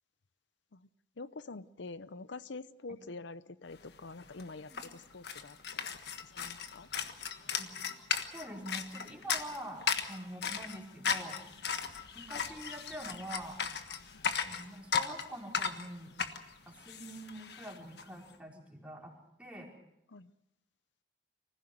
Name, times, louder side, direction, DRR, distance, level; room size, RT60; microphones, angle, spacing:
voice 1, 1.2-5.9 6.2-6.9 20.1-20.3, left 3 dB, 90° left, 15 dB, 0.7 m, -46 dB
sound 1, 3.9-4.0 4.2-18.0, left 6 dB, 65° left, 1.5 m, -36 dB
voice 2, 8.3-11.4 12.1-13.6 14.4-16.1 16.7-19.1 19.4-19.7, right 1 dB, 5° right, -2 dB, 4.5 m, -45 dB
25.0 x 16.0 x 7.8 m, 0.91 s
head